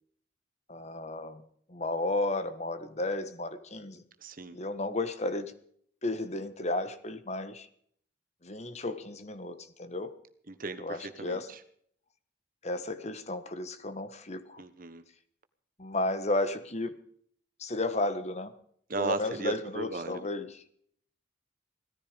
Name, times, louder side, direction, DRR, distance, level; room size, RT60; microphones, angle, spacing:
voice 1, 0.7-1.4 1.7-4.0 4.5-5.5 6.0-7.7 8.4-10.1 10.8-11.5 12.6-14.6 15.8-17.0 17.6-18.5 19.0-20.7, left 2 dB, 35° left, 11 dB, 1.4 m, -33 dB
voice 2, 4.2-4.6 10.5-11.6 14.6-15.0 18.9-20.3, right 3 dB, 50° right, 10 dB, 1.3 m, -36 dB
17.5 x 14.0 x 5.2 m, 0.62 s
head